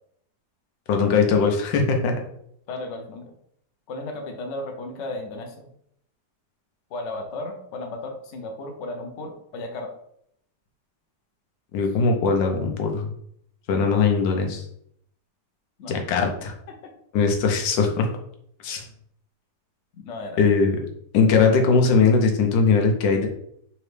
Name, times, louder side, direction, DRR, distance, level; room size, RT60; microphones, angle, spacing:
voice 1, 0.9-2.1 11.7-13.1 13.7-14.7 15.9-16.5 17.1-18.1 18.6-18.8 20.4-20.8 21.1-23.3, left 5 dB, 75° left, 3 dB, 1.4 m, -20 dB
voice 2, 2.7-3.3 3.9-5.7 6.9-9.9 15.8-15.9 16.7-16.9 20.0-20.4, left 2 dB, 60° left, 3 dB, 0.7 m, -34 dB
4.2 x 2.8 x 3.2 m, 0.70 s
omnidirectional pair, 2.0 m